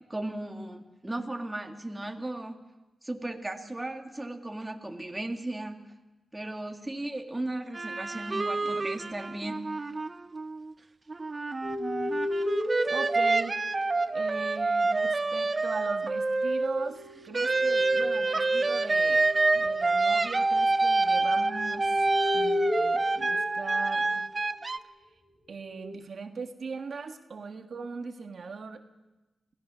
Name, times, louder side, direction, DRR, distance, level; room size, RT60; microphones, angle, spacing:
voice 1, 0.0-2.6 3.0-5.8 6.3-9.6, right 1 dB, 15° right, 3 dB, 2.1 m, -36 dB
sound 1, 7.7-10.7 11.1-16.9 17.3-24.8, right 3 dB, 30° right, 0.7 m, -27 dB
sound 2, 11.6-14.4 16.5-24.2 25.5-26.0, left 1 dB, 20° left, 4.7 m, -35 dB
voice 2, 12.9-13.6 14.1-22.1 22.3-24.3 25.5-28.8, right 4 dB, 60° right, 5 dB, 1.5 m, -40 dB
29.0 x 17.5 x 6.3 m, 1.1 s
wide cardioid pair, 100°, 0 cm